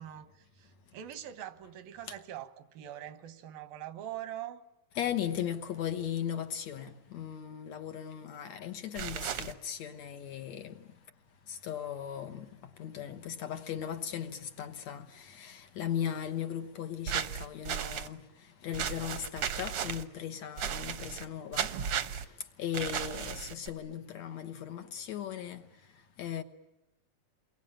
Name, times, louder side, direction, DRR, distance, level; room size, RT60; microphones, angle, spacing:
voice 1, 0.0-4.6, right 11 dB, 85° right, 3.1 m, -43 dB
voice 2, 5.0-10.8 11.5-18.2 18.6-21.7 22.1-22.2 22.6-25.6 26.2-26.4, left 9 dB, 60° left, 2.2 m, -37 dB
sound 1, 8.9-9.5 17.1-18.1 18.7-20.0 20.6-21.3 21.5-22.2 22.7-23.7, right 8 dB, 60° right, 1.6 m, -35 dB
29.0 x 23.0 x 8.8 m
omnidirectional pair, 4.0 m